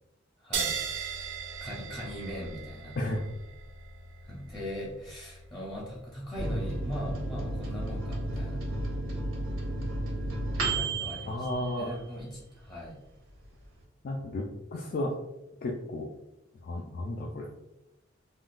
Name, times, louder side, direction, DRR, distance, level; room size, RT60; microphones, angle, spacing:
voice 1, 0.4-0.8 1.6-3.0 4.2-8.7 10.6-13.0 14.9-15.0, equal, 25° left, -5 dB, 0.7 m, -40 dB
sound 1, 0.5-7.5, right 6 dB, 65° right, 0.4 m, -39 dB
Microwave oven, 6.4-12.4 12.8-12.9 13.2-13.8, right 2 dB, 85° right, 0.8 m, -33 dB
voice 2, 11.3-11.9 14.0-15.1 15.6-16.1 16.6-17.5, left 1 dB, 50° left, 0 dB, 0.3 m, -33 dB
3.6 x 2.3 x 2.4 m, 0.92 s
head